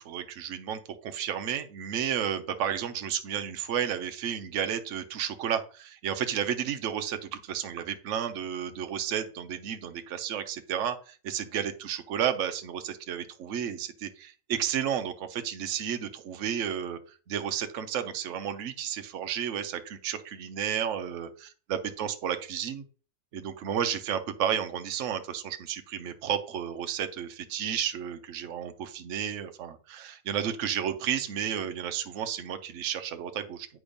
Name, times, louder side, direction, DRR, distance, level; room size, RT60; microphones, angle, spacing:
voice 1, 0.0-22.8 23.3-33.7, right 9 dB, 60° right, 8 dB, 0.8 m, -32 dB
8.5 x 3.5 x 5.2 m, 0.38 s
omnidirectional pair, 2.0 m